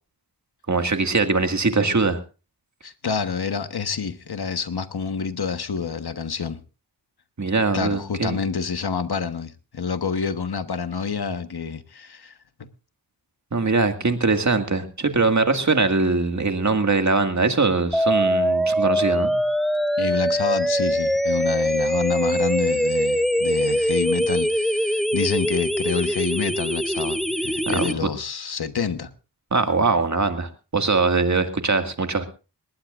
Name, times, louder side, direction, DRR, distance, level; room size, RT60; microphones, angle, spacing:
voice 1, 0.7-2.2 7.4-8.4 13.5-19.4 27.7-28.1 29.5-32.2, right 3 dB, 40° right, 2.0 m, -22 dB
voice 2, 2.8-6.6 7.7-12.3 20.0-29.1, left 6 dB, 65° left, 1.3 m, -28 dB
sound 1, 17.9-27.9, equal, ahead, 0.7 m, -22 dB
19.5 x 19.5 x 2.5 m
wide cardioid pair, 75°, 42 cm